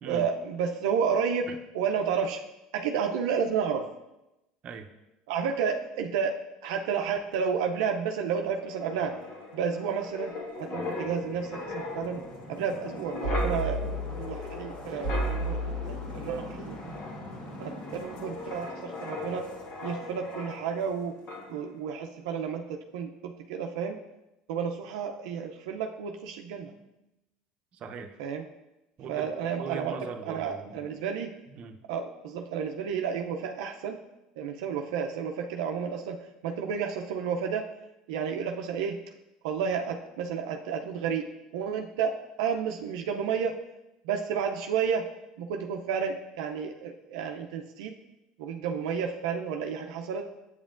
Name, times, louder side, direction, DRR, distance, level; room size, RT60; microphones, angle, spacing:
voice 1, 0.1-1.5 1.7-2.4 2.7-3.9 5.3-6.4 6.6-9.1 9.5-10.3 10.6-12.2 12.5-17.0 17.6-19.5 19.8-21.2 21.5-24.0 24.5-26.7 28.2-28.4 29.1-29.9 30.3-31.3 31.9-34.0 34.4-36.2 36.4-37.7 38.1-39.0 39.4-41.3 41.5-42.1 42.4-43.5 44.0-45.1 45.4-47.9 48.4-50.3, right 6 dB, 85° right, 3 dB, 0.5 m, -31 dB
Wind, 8.6-21.0 21.3-21.5, left 1 dB, 55° left, 1.7 m, -35 dB
voice 2, 26.6-27.0 27.7-28.1 29.0-30.9 31.5-31.8, right 6 dB, 45° right, 5 dB, 0.7 m, -41 dB
8.1 x 7.1 x 2.5 m, 0.94 s
supercardioid pair, 95°, 3 cm